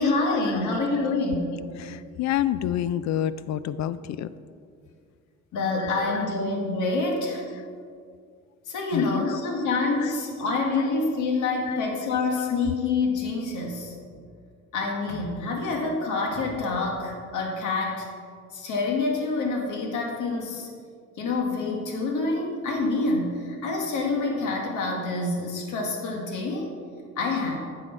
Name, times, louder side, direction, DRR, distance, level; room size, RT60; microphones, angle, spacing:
voice 1, 0.0-1.6 5.5-7.4 8.7-13.9 14.7-18.1 18.5-20.7 21.2-26.7 27.2-27.6, left 3 dB, 80° left, 1 dB, 1.6 m, -27 dB
voice 2, 1.8-4.3 5.8-6.3 8.9-9.3 10.0-10.1 11.7-11.8 12.4-12.5, left 11 dB, 65° left, 15 dB, 0.4 m, -29 dB
9.2 x 6.4 x 4.5 m, 2.2 s
cardioid pair, 90°, 30 cm